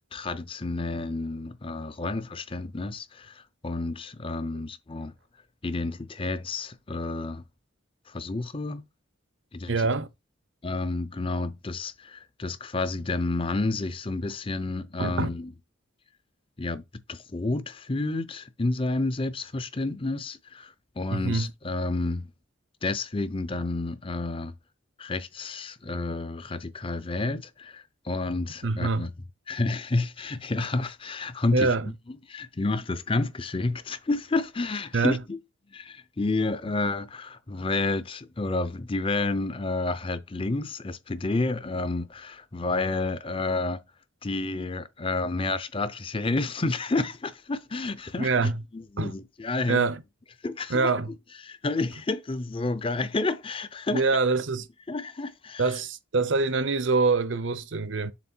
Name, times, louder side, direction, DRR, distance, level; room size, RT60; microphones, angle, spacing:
voice 1, 0.0-5.1 5.6-7.4 8.1-8.8 9.5-9.8 10.6-15.5 16.6-16.8 17.1-22.3 22.8-24.5 25.0-29.1 29.5-31.7 32.3-35.4 35.7-43.8 44.2-49.8 50.4-50.9 51.4-54.1 54.9-55.7, left 2 dB, 25° left, 0.6 m, -30 dB
voice 2, 9.7-10.1 15.0-15.3 21.1-21.5 28.6-29.1 31.5-31.9 34.9-35.2 48.2-48.6 49.0-49.1 49.7-50.0 50.7-51.1 53.9-54.7 55.6-58.1, right 3 dB, 65° right, 0.7 m, -25 dB
7.3 x 3.1 x 4.4 m
head